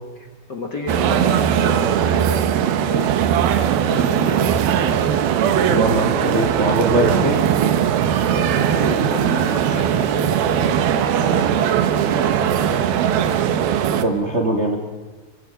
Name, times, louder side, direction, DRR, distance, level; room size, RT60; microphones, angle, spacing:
voice 1, 0.1-3.3 3.9-4.6 8.3-12.8, left 2 dB, 50° left, 3 dB, 1.3 m, -32 dB
sound 1, 0.9-14.0, right 9 dB, 85° right, 3.0 m, -19 dB
voice 2, 5.7-7.4 14.0-14.8, right 1 dB, 65° right, 1 dB, 0.6 m, -21 dB
29.5 x 23.5 x 5.2 m, 1.3 s
omnidirectional pair, 4.2 m